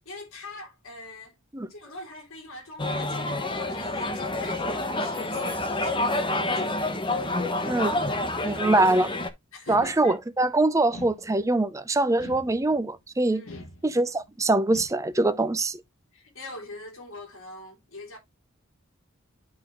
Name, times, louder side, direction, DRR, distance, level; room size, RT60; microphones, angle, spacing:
voice 1, 0.0-1.4 1.7-6.8 8.4-8.7 9.5-10.2 13.3-13.7 16.1-18.2, left 2 dB, 90° left, 2.8 m, -43 dB
sound 1, 2.8-9.3, left 2 dB, 25° left, 1.1 m, -28 dB
voice 2, 8.4-9.1 9.7-13.4 13.8-15.8, right 2 dB, 15° right, 0.6 m, -23 dB
sound 2, 9.7-10.4 10.9-11.7 12.2-13.0 13.5-14.3 14.7-15.3, left 2 dB, 70° left, 1.4 m, -45 dB
11.0 x 3.8 x 3.0 m
head